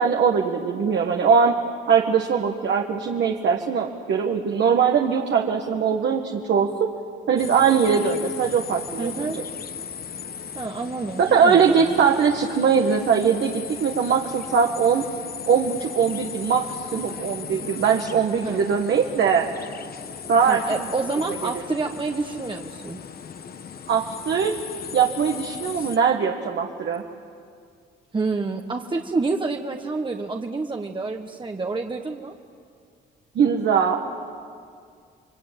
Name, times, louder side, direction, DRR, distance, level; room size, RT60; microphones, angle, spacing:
voice 1, 0.0-1.6 1.9-6.9 7.3-9.4 11.2-15.0 15.5-19.5 20.3-20.9 21.4-21.6 23.9-24.6 24.9-27.0 33.4-34.0, right 6 dB, 65° right, 1 dB, 1.8 m, -21 dB
sound 1, 7.4-26.0, left 7 dB, 50° left, 1.2 m, -37 dB
voice 2, 9.0-9.4 10.5-11.9 18.4-18.6 20.5-23.0 25.7-25.9 28.1-32.3, right 3 dB, 25° right, 3 dB, 1.4 m, -28 dB
28.5 x 22.5 x 9.1 m, 2.2 s
cardioid pair, 90°, 20 cm